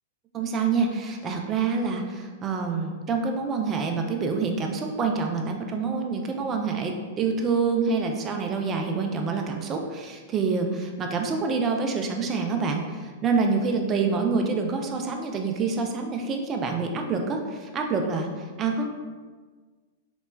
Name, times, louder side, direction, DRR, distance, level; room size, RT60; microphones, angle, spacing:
voice 1, 0.3-18.3 18.6-18.9, right 4 dB, 25° right, 3 dB, 0.3 m, -27 dB
2.9 x 2.1 x 2.2 m, 1.4 s
hypercardioid pair, 120°, 0 cm